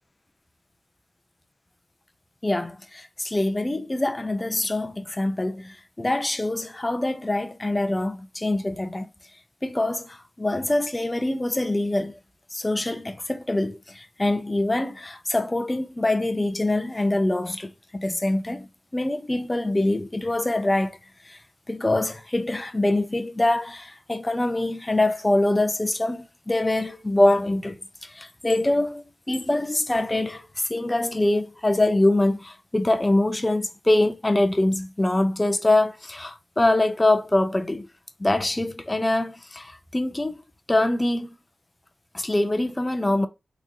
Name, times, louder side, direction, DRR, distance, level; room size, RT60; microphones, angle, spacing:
voice 1, 2.4-9.1 9.6-12.2 12.5-21.0 21.3-21.4 21.7-27.8 28.1-37.9 38.2-40.4 40.7-41.3 42.1-43.3, left 1 dB, 20° left, 0.5 m, -24 dB
3.6 x 3.0 x 2.5 m
wide cardioid pair, 90°, 0 cm